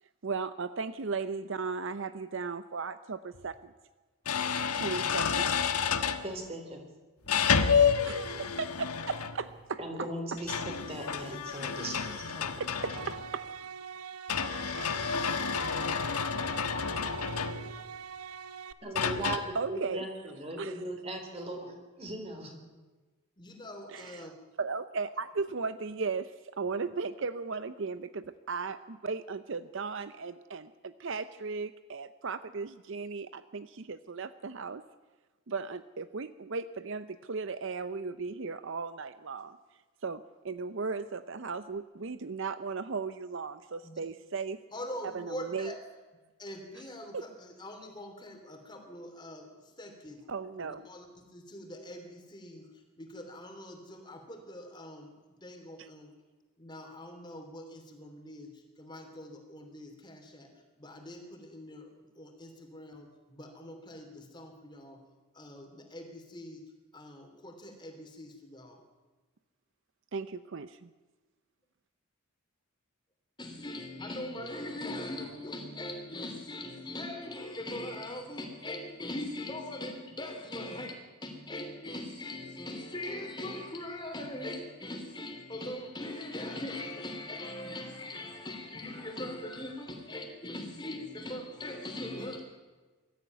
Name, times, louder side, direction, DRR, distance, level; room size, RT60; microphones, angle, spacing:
voice 1, 0.2-3.7 4.7-5.5 8.0-9.8 12.8-13.4 14.7-15.0 19.5-20.0 20.6-20.7 23.9-24.3 24.6-34.8 35.5-39.6 40.0-44.6 45.0-45.7 47.1-47.2 50.3-50.8 55.8-55.9 70.1-70.9, right 4 dB, 55° right, 13 dB, 0.6 m, -36 dB
sound 1, 3.3-3.4 4.3-6.3 7.3-9.5 10.4-13.4 14.3-17.9 19.0-19.4, left 6 dB, 90° left, 1.4 m, -30 dB
voice 2, 6.2-6.8 9.8-12.5 18.8-22.5, right 1 dB, 25° right, 3 dB, 3.7 m, -38 dB
sound 2, 12.7-18.7, right 6 dB, 90° right, 1.0 m, -43 dB
voice 3, 23.4-24.3 43.8-44.0 44.7-45.8 46.4-50.3 50.6-55.1 55.4-56.1 56.6-60.5 60.8-65.0 65.3-66.6 66.9-68.8 73.4-92.4, left 1 dB, 20° left, 4 dB, 3.1 m, -42 dB
22.5 x 13.5 x 9.4 m, 1.3 s
head